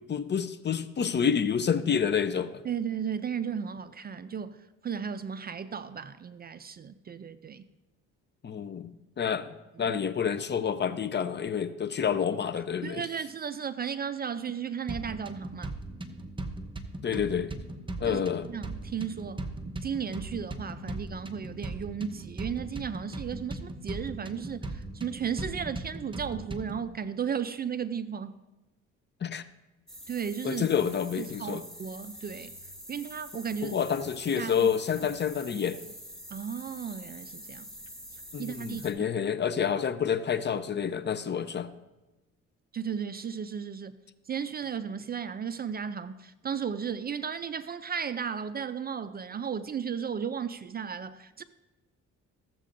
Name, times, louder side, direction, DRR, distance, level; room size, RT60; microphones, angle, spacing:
voice 1, 0.1-2.6 8.4-8.9 9.2-9.5 9.8-13.0 17.0-17.5 18.0-18.5 29.2-29.4 30.4-31.6 33.6-35.8 38.3-41.7, left 7 dB, 35° left, 0.5 m, -28 dB
voice 2, 2.6-4.6 4.8-7.6 9.8-10.0 12.8-15.7 18.0-18.2 18.5-19.5 19.8-28.4 30.1-30.7 31.2-32.5 32.9-33.8 34.4-34.7 36.3-37.7 38.4-38.8 42.7-43.9 44.3-51.4, right 7 dB, 30° right, 0.4 m, -35 dB
sound 1, 14.9-26.9, right 2 dB, 15° right, 0.8 m, -39 dB
sound 2, 29.9-38.9, equal, ahead, 1.7 m, -46 dB
14.5 x 7.5 x 2.6 m
cardioid pair, 90°, 30 cm